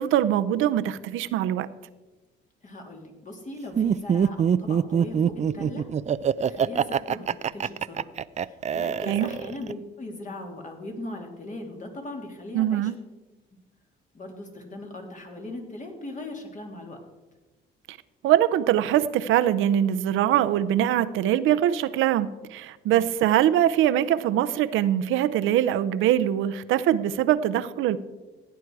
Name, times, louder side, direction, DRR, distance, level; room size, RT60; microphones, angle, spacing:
voice 1, 0.0-1.7 9.1-9.3 12.5-13.0 17.9-18.0 18.2-28.0, right 11 dB, 90° right, 13 dB, 0.7 m, -23 dB
voice 2, 2.6-5.8 6.4-8.1 8.4-12.9 14.1-17.0, left 2 dB, 40° left, 1 dB, 3.1 m, -39 dB
Laughter, 3.8-9.7, right 8 dB, 35° right, 0.4 m, -24 dB
16.5 x 9.2 x 4.8 m, 1.2 s
cardioid pair, 90°, 20 cm